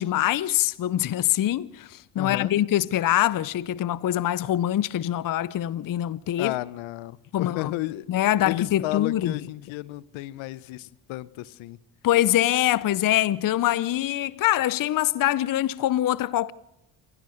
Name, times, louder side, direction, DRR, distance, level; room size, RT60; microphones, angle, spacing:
voice 1, 0.0-6.5 7.3-7.7 8.1-9.4 12.0-16.5, left 13 dB, 45° left, 0.7 m, -24 dB
voice 2, 2.2-2.5 6.4-8.1 8.4-11.8, left 17 dB, 75° left, 0.9 m, -32 dB
26.5 x 17.0 x 6.5 m
hypercardioid pair, 55°, 47 cm